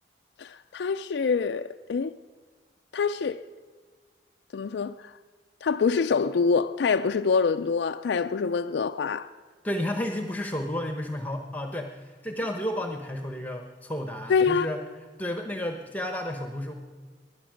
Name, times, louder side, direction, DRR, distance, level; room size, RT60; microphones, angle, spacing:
voice 1, 0.4-2.1 2.9-3.4 4.5-5.1 5.6-9.3 14.3-14.7, left 5 dB, 75° left, 0.4 m, -25 dB
voice 2, 9.6-14.8 15.2-16.7, left 1 dB, 10° left, 0.9 m, -32 dB
19.5 x 11.0 x 6.3 m
head